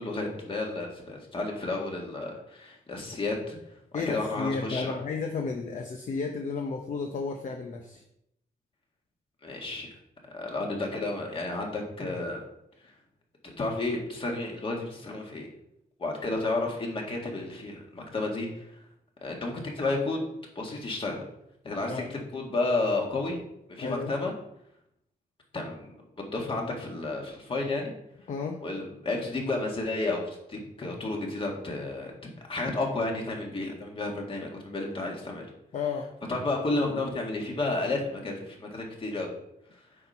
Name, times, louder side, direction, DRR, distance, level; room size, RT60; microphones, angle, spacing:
voice 1, 0.0-3.6 3.9-4.9 9.4-9.9 10.3-12.4 12.8-12.9 13.4-15.5 16.0-18.7 19.2-20.3 20.6-21.2 21.6-23.4 23.7-24.3 25.5-27.9 28.6-35.5 36.3-39.3, left 2 dB, 35° left, 0 dB, 1.8 m, -32 dB
voice 2, 3.9-8.0 21.9-22.0 23.8-24.1 28.3-28.6 35.7-36.1, left 4 dB, 50° left, 3 dB, 0.7 m, -32 dB
8.5 x 4.4 x 5.4 m, 0.78 s
wide cardioid pair, 160°, 16 cm